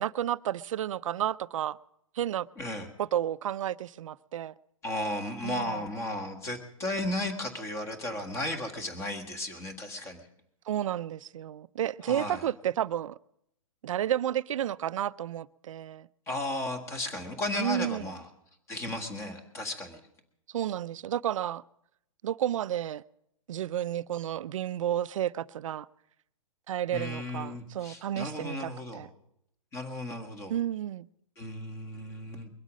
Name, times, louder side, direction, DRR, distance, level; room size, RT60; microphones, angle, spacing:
voice 1, 0.0-1.8 2.2-2.5 3.0-4.5 5.4-5.8 10.7-13.2 13.8-16.1 17.6-18.1 20.5-21.6 22.2-23.0 23.5-25.9 26.7-29.1 30.5-31.1, right 11 dB, 65° right, 0.5 m, -31 dB
voice 2, 2.6-2.9 4.8-10.2 12.0-12.4 16.3-18.3 18.7-20.0 26.9-29.1 29.7-30.5 31.4-32.5, left 1 dB, 15° left, 1.6 m, -35 dB
22.5 x 8.2 x 6.3 m
hypercardioid pair, 155°, 18 cm